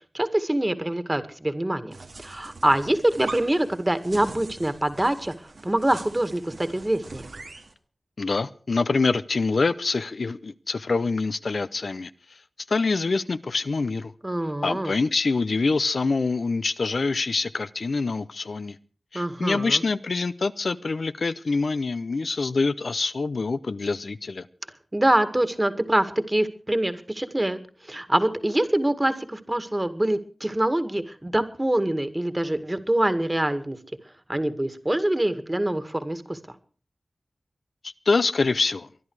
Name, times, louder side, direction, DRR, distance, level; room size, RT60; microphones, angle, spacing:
voice 1, 0.1-1.9 2.2-7.3 14.2-14.9 19.1-19.8 24.9-27.6 27.9-33.8 34.3-36.4, right 1 dB, 25° right, 2.0 m, -25 dB
sound 1, 1.9-7.7, right 3 dB, 90° right, 2.4 m, -42 dB
voice 2, 8.2-12.4 12.7-14.1 14.6-18.8 19.1-24.4 38.1-38.9, left 3 dB, 75° left, 0.7 m, -25 dB
23.5 x 11.0 x 4.8 m
cardioid pair, 45°, 0 cm